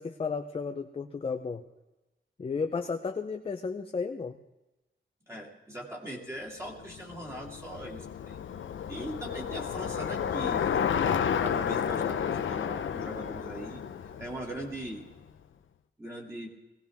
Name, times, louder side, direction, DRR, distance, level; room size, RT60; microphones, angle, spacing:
voice 1, 0.0-1.6 2.4-4.3, left 5 dB, 30° left, 5 dB, 0.6 m, -33 dB
voice 2, 5.3-8.4 8.9-10.9 11.4-13.8 14.2-15.0 16.0-16.5, right 1 dB, 15° right, -2 dB, 2.2 m, -40 dB
Bicycle, 6.8-15.1, left 8 dB, 90° left, 0.7 m, -31 dB
20.0 x 17.0 x 3.5 m, 1.0 s
wide cardioid pair, 180°, 19 cm